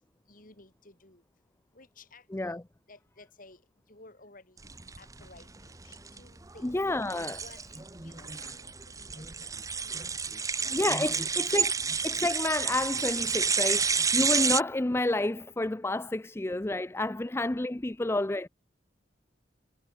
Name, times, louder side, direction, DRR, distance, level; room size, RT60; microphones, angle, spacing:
voice 1, 0.3-1.2 1.7-2.5 2.9-3.6 3.9-4.6 5.0-6.8 7.4-7.6 7.9-10.0 10.3-11.5, left 2 dB, 50° left, 4.5 m, -55 dB
voice 2, 2.3-2.6 6.6-7.4 10.7-11.7 12.0-18.5, left 2 dB, 15° left, 0.5 m, -30 dB
sound 1, 4.6-14.6, right 5 dB, 20° right, 1.1 m, -30 dB
head